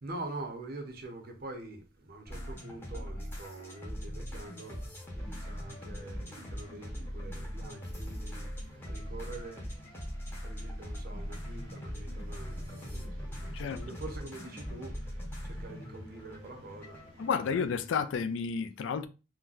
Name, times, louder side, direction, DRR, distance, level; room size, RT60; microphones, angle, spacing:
voice 1, 0.0-4.8 5.1-9.6 10.4-17.5, right 2 dB, 45° right, 0.6 m, -45 dB
sound 1, 2.3-17.7, equal, 10° left, 0.7 m, -41 dB
sound 2, 5.2-18.0, left 1 dB, 90° right, 1.1 m, -54 dB
voice 2, 17.2-19.1, left 6 dB, 65° left, 0.3 m, -31 dB
3.8 x 2.1 x 2.4 m
head